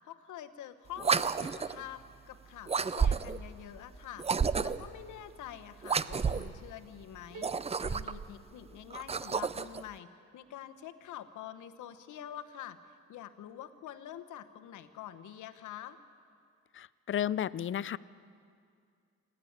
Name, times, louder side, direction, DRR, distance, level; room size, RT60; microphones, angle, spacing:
voice 1, 0.0-4.3 4.6-12.8 13.1-16.0, left 11 dB, 80° left, 9 dB, 1.1 m, -46 dB
sound 1, 1.0-1.8 2.7-3.5 4.2-4.9 5.8-6.6 7.3-8.3 8.9-9.8, right 5 dB, 20° right, 0.5 m, -31 dB
sound 2, 7.3-9.3, right 2 dB, 85° right, 1.7 m, -53 dB
voice 2, 16.7-18.0, left 10 dB, 45° left, 19 dB, 0.5 m, -33 dB
27.5 x 12.0 x 8.8 m, 2.3 s
cardioid pair, 90°, 30 cm